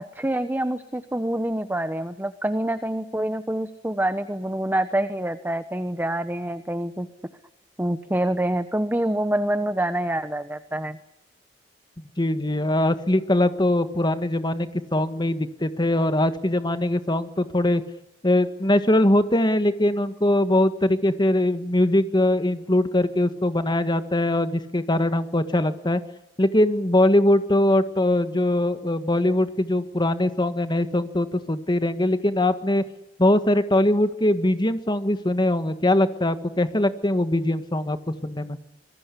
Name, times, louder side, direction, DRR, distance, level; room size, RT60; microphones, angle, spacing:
voice 1, 0.0-7.1 7.8-11.0, right 1 dB, 10° right, 11 dB, 1.0 m, -26 dB
voice 2, 12.2-17.8 18.2-26.0 26.4-32.8 33.2-38.0 38.2-38.6, left 1 dB, 25° left, 10 dB, 1.7 m, -22 dB
26.5 x 21.5 x 8.4 m, 0.90 s
head